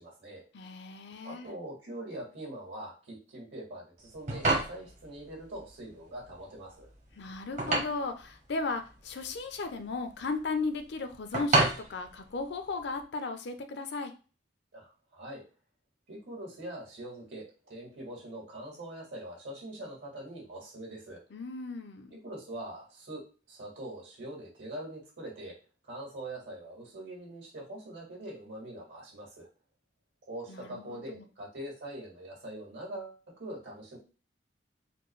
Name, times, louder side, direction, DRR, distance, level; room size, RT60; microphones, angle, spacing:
voice 1, 0.0-0.4 1.2-6.9 14.7-15.4 16.1-21.2 22.2-25.5 25.8-29.5 30.3-34.0, right 1 dB, 70° right, -3 dB, 1.9 m, -43 dB
voice 2, 0.5-1.5 7.2-11.6 11.9-14.1 21.3-22.2 30.5-31.3, left 3 dB, 65° left, 8 dB, 0.5 m, -36 dB
sound 1, 4.0-13.0, right 2 dB, 40° right, 0.9 m, -32 dB
4.3 x 2.3 x 3.1 m, 0.36 s
head